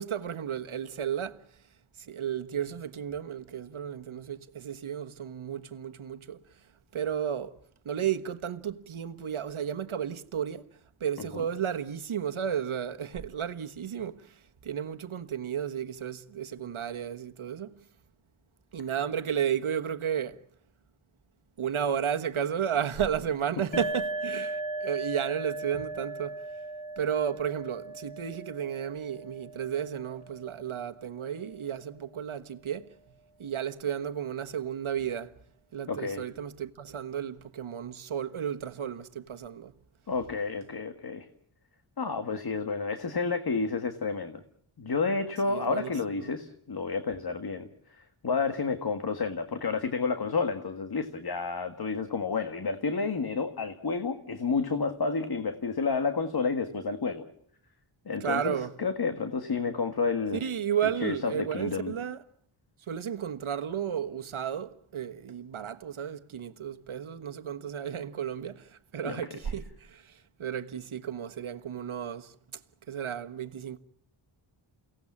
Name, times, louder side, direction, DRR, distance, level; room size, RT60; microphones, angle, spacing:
voice 1, 0.0-1.4 2.0-6.4 6.9-7.6 7.8-10.7 11.0-14.3 14.6-17.7 18.7-20.4 21.6-26.4 27.0-32.9 33.4-35.3 35.7-39.7 45.4-45.9 58.2-58.7 60.4-62.2 62.9-70.1 70.4-72.3 72.9-73.8, right 8 dB, 70° right, 1.4 m, -33 dB
sound 1, 23.7-31.2, right 2 dB, 20° left, 5.0 m, -38 dB
voice 2, 35.9-36.2 40.1-41.3 42.0-44.4 44.8-47.7 48.0-57.2 58.1-60.5 61.0-61.9 69.0-69.5, left 4 dB, 45° left, 1.7 m, -30 dB
29.5 x 18.0 x 7.3 m
wide cardioid pair, 110°, 50 cm